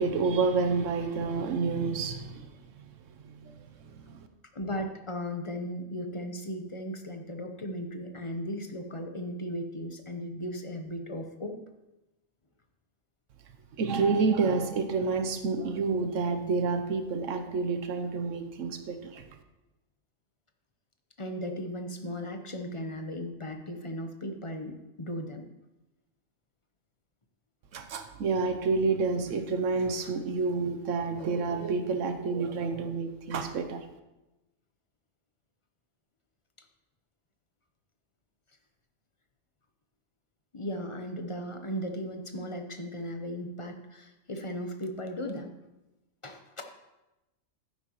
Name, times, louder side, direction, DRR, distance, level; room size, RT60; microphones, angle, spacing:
voice 1, 0.0-2.5 3.4-3.6 3.9-4.3 13.8-19.2 27.7-33.8, right 4 dB, 90° right, 7 dB, 1.1 m, -29 dB
voice 2, 4.5-11.6 21.2-25.5 40.5-45.6 46.2-46.6, equal, 30° left, 5 dB, 0.8 m, -36 dB
12.0 x 9.8 x 3.1 m, 1.0 s
omnidirectional pair, 1.3 m